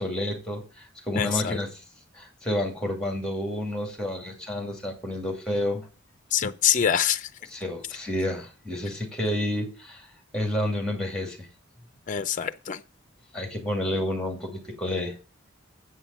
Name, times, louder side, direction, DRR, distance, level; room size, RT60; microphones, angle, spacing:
voice 1, 0.0-1.8 2.1-5.9 7.4-10.1 10.3-11.5 13.3-15.1, left 1 dB, 5° left, 2.5 m, -30 dB
voice 2, 1.2-1.6 6.3-7.3 12.1-12.8, left 8 dB, 40° left, 0.5 m, -25 dB
8.0 x 5.5 x 7.0 m
head